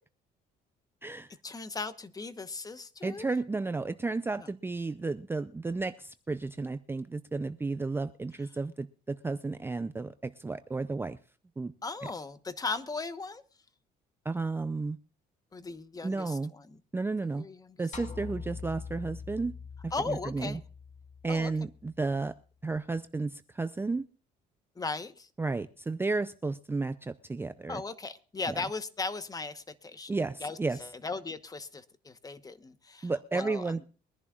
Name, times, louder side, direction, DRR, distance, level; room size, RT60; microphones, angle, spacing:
voice 1, 1.4-3.3 4.4-4.5 11.8-13.4 15.5-16.8 17.4-17.8 19.9-20.6 21.3-21.5 24.8-25.3 27.7-30.1 30.4-33.7, left 3 dB, 20° left, 12 dB, 1.1 m, -37 dB
voice 2, 3.0-11.2 11.6-11.7 14.3-15.0 16.0-16.5 16.9-17.4 17.8-19.5 19.8-20.6 21.2-22.3 22.6-24.0 25.4-27.8 28.5-28.6 30.1-30.8 33.0-33.9, right 3 dB, 15° right, 11 dB, 0.5 m, -33 dB
sound 1, 17.9-22.3, left 5 dB, 45° left, 2.2 m, -44 dB
23.0 x 11.0 x 2.4 m, 0.39 s
cardioid pair, 110°, 17 cm